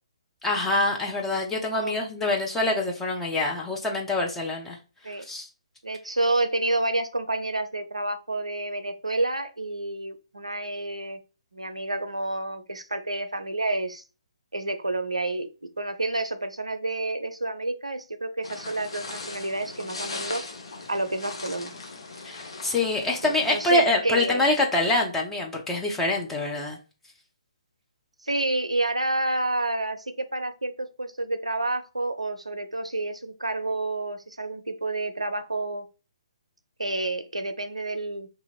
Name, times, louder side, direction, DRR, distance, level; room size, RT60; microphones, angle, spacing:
voice 1, 0.4-4.8 5.3-5.5 22.2-26.8, left 2 dB, 5° left, -1 dB, 0.6 m, -25 dB
voice 2, 5.8-11.2 11.5-14.0 14.5-15.5 15.8-20.4 20.9-21.7 23.2-24.6 28.2-30.0 30.3-35.9 36.8-38.3, right 2 dB, 80° right, 9 dB, 0.5 m, -29 dB
sound 1, 18.4-23.9, left 3 dB, 55° left, 0.8 m, -39 dB
2.8 x 2.5 x 4.1 m, 0.33 s
figure-of-eight pair, 135°, 3 cm